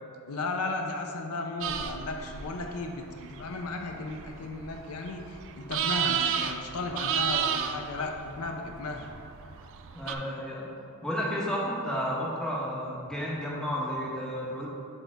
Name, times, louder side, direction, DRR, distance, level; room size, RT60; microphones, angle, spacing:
voice 1, 0.3-9.1, left 3 dB, 70° left, 3 dB, 0.5 m, -35 dB
sound 1, 1.6-10.1, right 8 dB, 60° right, 0.3 m, -33 dB
voice 2, 9.9-10.7 11.0-14.7, equal, 5° left, -5 dB, 0.9 m, -32 dB
5.2 x 4.2 x 4.5 m, 2.5 s
head